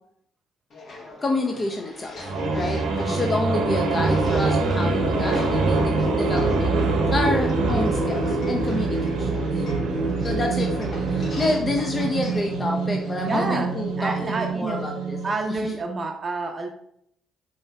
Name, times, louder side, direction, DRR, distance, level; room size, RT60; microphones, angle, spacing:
sound 1, 0.7-13.4, left 2 dB, 55° left, 0.9 m, -42 dB
voice 1, 1.2-2.1 2.5-6.7 7.1-9.3 9.6-9.7 10.2-15.2, left 2 dB, 35° left, 2 dB, 0.5 m, -28 dB
sound 2, 2.2-15.5, right 3 dB, 75° right, 0.8 m, -24 dB
voice 2, 2.9-3.6 13.2-14.9 15.2-16.7, right 3 dB, 40° right, 3 dB, 0.5 m, -29 dB
4.5 x 3.1 x 2.2 m, 0.70 s
hypercardioid pair, 50°, 0 cm